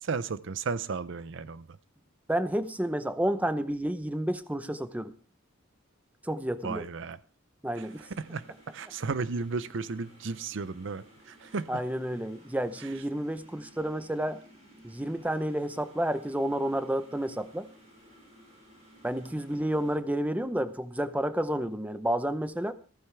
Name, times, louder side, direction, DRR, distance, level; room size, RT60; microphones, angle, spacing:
voice 1, 0.0-1.8 6.6-7.2 7.7-11.8 12.8-12.9, right 4 dB, 60° right, 15 dB, 0.6 m, -34 dB
voice 2, 2.3-5.1 6.2-6.8 7.6-8.0 11.7-14.4 14.8-17.7 19.0-22.7, right 1 dB, 5° right, 11 dB, 0.7 m, -30 dB
sound 1, 7.8-20.0, equal, 35° right, 7.4 m, -56 dB
15.0 x 14.0 x 3.4 m, 0.37 s
head